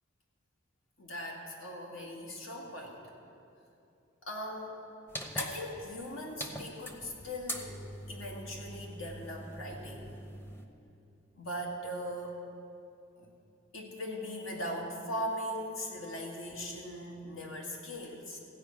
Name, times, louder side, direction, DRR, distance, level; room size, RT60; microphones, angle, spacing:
voice 1, 1.0-3.0 4.2-4.9 5.3-10.2 11.3-12.4 13.2-13.3 13.7-18.4, equal, 75° left, -1 dB, 2.1 m, -40 dB
sound 1, 5.1-10.7, equal, 10° left, 0.8 m, -42 dB
15.5 x 5.4 x 8.7 m, 2.7 s
head